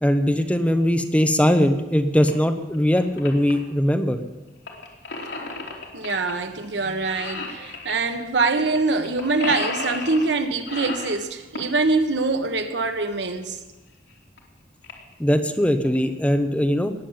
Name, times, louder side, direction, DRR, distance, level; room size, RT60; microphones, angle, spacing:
voice 1, 0.0-4.2 15.2-16.9, equal, 5° left, 7 dB, 1.0 m, -20 dB
sound 1, 2.2-2.3 2.7-3.5 4.7-6.3 6.6-6.8 7.0-8.0 8.7-8.8 9.0-10.3 10.7-11.8 13.4-13.5 14.1-14.2 14.4-14.5 14.8-15.1 15.6-16.0, left 3 dB, 80° left, 3.2 m, -33 dB
voice 2, 5.9-13.6, right 3 dB, 80° right, 7 dB, 1.5 m, -24 dB
19.5 x 7.4 x 8.8 m, 1.2 s
head